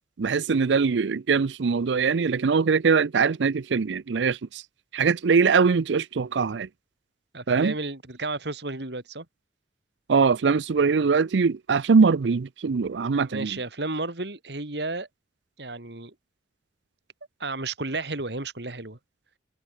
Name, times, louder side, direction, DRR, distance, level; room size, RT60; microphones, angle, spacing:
voice 1, 0.2-4.6 4.9-6.7 7.5-7.7 10.1-13.6, right 5 dB, 85° right, 0.5 m, -22 dB
voice 2, 7.3-9.3 13.2-15.1 15.6-16.1 17.4-19.0, right 3 dB, 70° right, 2.7 m, -32 dB
head